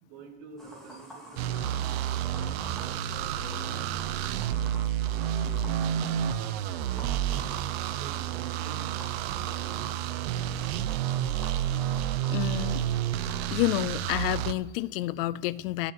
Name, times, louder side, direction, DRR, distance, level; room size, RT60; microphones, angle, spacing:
voice 1, 0.0-7.6 8.0-9.0 9.4-9.9 11.1-11.7, right 4 dB, 45° right, 2.7 m, -49 dB
sound 1, 0.6-14.1, right 1 dB, ahead, 2.7 m, -48 dB
sound 2, 1.4-14.5, right 11 dB, 65° right, 0.8 m, -30 dB
voice 2, 12.3-12.9 13.5-15.9, left 17 dB, 60° left, 0.4 m, -29 dB
13.5 x 7.2 x 8.6 m
supercardioid pair, 160°, 32 cm